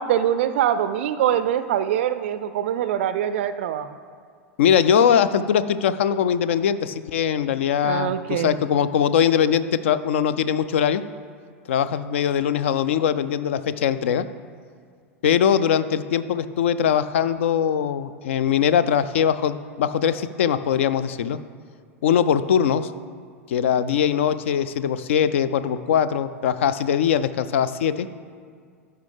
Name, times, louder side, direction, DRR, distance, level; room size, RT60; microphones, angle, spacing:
voice 1, 0.0-4.0 7.8-8.6, right 10 dB, 55° right, 12 dB, 0.3 m, -23 dB
voice 2, 4.6-11.0 11.7-14.3 15.2-21.4 22.0-22.9 23.5-28.1, left 8 dB, 60° left, 14 dB, 0.4 m, -21 dB
12.5 x 5.6 x 3.4 m, 2.1 s
figure-of-eight pair, 90°, 8 cm